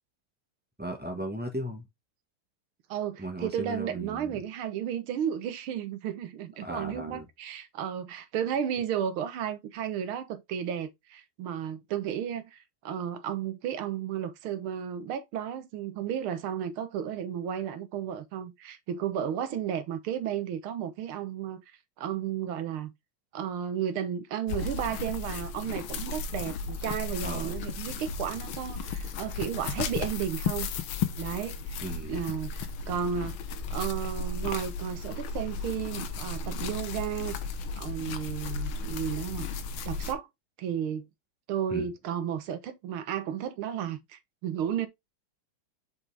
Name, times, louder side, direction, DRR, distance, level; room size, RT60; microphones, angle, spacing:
voice 1, 0.8-1.9 3.2-4.4 6.6-7.3 27.2-27.6 31.8-32.2 41.7-41.9, right 1 dB, 10° right, 0.7 m, -36 dB
voice 2, 2.9-21.6 22.0-22.9 23.3-30.7 31.2-31.8 32.1-33.4 33.7-37.4 37.8-39.5 39.9-40.3 40.6-41.1 41.5-44.9, right 9 dB, 80° right, 1.8 m, -33 dB
sound 1, 24.5-40.1, left 4 dB, 80° left, 1.7 m, -34 dB
5.7 x 5.1 x 3.3 m
omnidirectional pair, 2.3 m